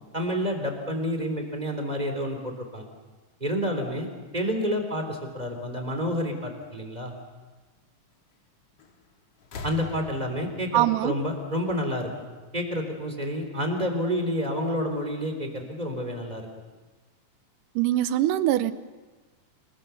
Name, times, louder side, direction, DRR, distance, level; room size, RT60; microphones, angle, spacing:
voice 1, 0.1-2.8 3.4-4.1 4.3-7.1 9.6-12.1 12.5-16.5, equal, 10° right, 4 dB, 3.2 m, -29 dB
sound 1, 8.8-9.1 9.4-12.2 13.3-13.4, left 4 dB, 50° left, 2.7 m, -43 dB
voice 2, 10.7-11.2 17.8-18.7, right 14 dB, 75° right, 13 dB, 2.3 m, -23 dB
28.5 x 20.5 x 7.0 m, 1.3 s
omnidirectional pair, 3.9 m